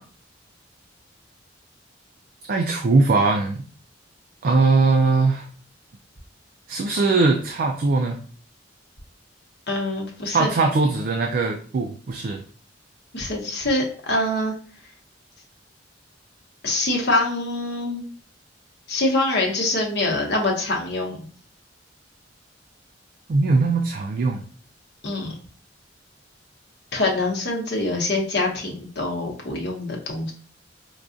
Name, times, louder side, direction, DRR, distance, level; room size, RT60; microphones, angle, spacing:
voice 1, 2.5-3.6 4.4-5.5 6.7-8.2 10.3-12.4 23.3-24.4, right 3 dB, 50° right, 4 dB, 0.3 m, -20 dB
voice 2, 9.7-10.5 13.1-14.5 16.6-18.0 18.9-21.3 25.0-25.4 26.9-30.3, left 2 dB, 60° left, -1 dB, 0.9 m, -24 dB
4.6 x 2.3 x 2.5 m, 0.43 s
head